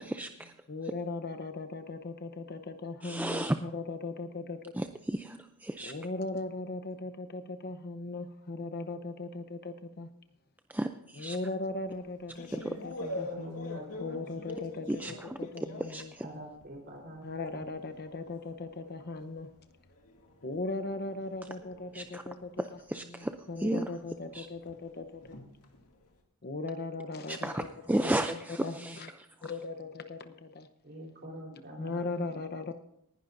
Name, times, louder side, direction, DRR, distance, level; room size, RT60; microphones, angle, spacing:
voice 1, 0.0-0.5 3.0-3.6 4.8-5.9 10.7-11.4 12.5-12.7 14.9-15.1 15.8-16.3 21.9-22.2 22.6-23.3 23.6-23.9 24.3-24.5 27.3-29.0, right 1 dB, 10° right, 7 dB, 0.4 m, -33 dB
voice 2, 0.7-4.7 5.8-10.1 11.2-16.1 17.2-19.5 20.4-25.4 26.4-28.1 28.5-29.1 29.4-30.7 31.5-32.7, left 3 dB, 45° left, 8 dB, 0.9 m, -38 dB
sound 1, 11.7-16.9 17.2-26.1, left 2 dB, 80° left, 2.3 m, -46 dB
voice 3, 13.0-14.3 16.2-17.7 30.8-32.2, right 1 dB, 50° right, 0 dB, 4.1 m, -46 dB
19.0 x 11.0 x 2.6 m, 0.77 s
head